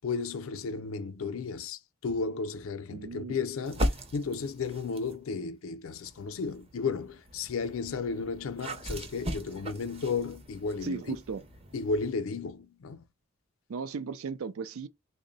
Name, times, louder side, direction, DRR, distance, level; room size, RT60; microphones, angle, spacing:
voice 1, 0.0-11.2 11.7-13.0, left 4 dB, 85° left, 0.5 m, -34 dB
voice 2, 2.9-3.4 10.8-11.4 13.7-14.9, right 5 dB, 90° right, 0.4 m, -36 dB
sound 1, 3.6-5.2 5.9-12.1, equal, 30° right, 0.6 m, -38 dB
3.6 x 2.1 x 3.9 m
head